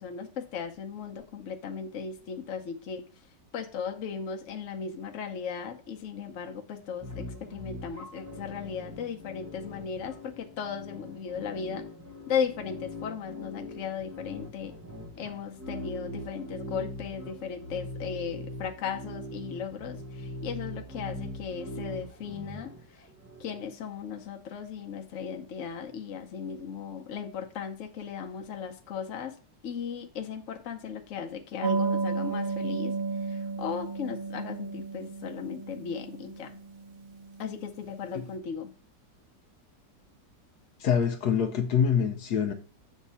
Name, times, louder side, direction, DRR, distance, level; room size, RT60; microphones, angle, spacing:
voice 1, 0.0-3.1 3.5-11.8 12.3-14.7 15.2-22.7 23.4-29.4 29.6-32.9 33.3-36.5 37.4-38.7, left 7 dB, 55° left, 1.1 m, -36 dB
sound 1, 7.0-23.6, left 1 dB, 15° right, 0.7 m, -41 dB
sound 2, 31.6-37.8, right 4 dB, 60° right, 1.1 m, -33 dB
voice 2, 40.8-42.5, left 7 dB, 70° left, 1.2 m, -25 dB
7.3 x 3.7 x 5.5 m
omnidirectional pair, 1.9 m